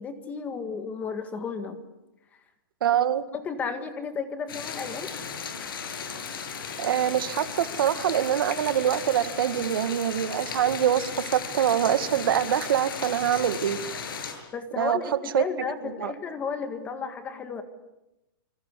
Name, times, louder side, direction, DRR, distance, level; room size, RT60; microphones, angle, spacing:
voice 1, 0.0-1.8 3.3-5.1 14.5-17.6, left 5 dB, 10° left, 9 dB, 1.7 m, -33 dB
voice 2, 2.8-3.2 6.8-13.8 14.8-15.0 15.3-15.4 16.0-16.1, right 10 dB, 70° right, 11 dB, 1.9 m, -24 dB
sound 1, 4.5-14.3, left 6 dB, 70° left, 7.2 m, -36 dB
27.0 x 24.0 x 8.3 m, 0.94 s
supercardioid pair, 175°, 12 cm